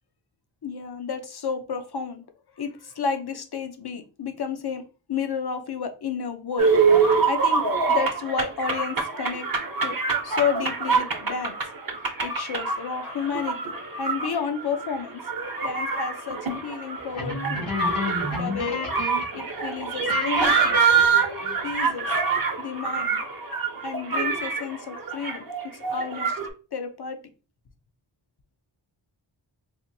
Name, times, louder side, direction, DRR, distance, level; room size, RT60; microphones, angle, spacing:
voice 1, 0.6-2.2 2.6-4.8 5.1-6.7 7.2-9.5 9.8-10.0 10.2-11.6 12.2-13.6 14.0-15.2 15.6-17.7 18.3-18.8 19.3-20.8 21.6-22.1 22.6-23.2 23.8-26.4 26.7-27.2, left 6 dB, 50° left, 7 dB, 0.7 m, -31 dB
sound 1, 6.6-26.5, right 5 dB, 45° right, 0.8 m, -25 dB
sound 2, 17.1-19.3 19.6-19.7 20.1-21.7, left 2 dB, 75° left, 2.0 m, -30 dB
4.2 x 2.5 x 2.6 m, 0.34 s
wide cardioid pair, 60°, 49 cm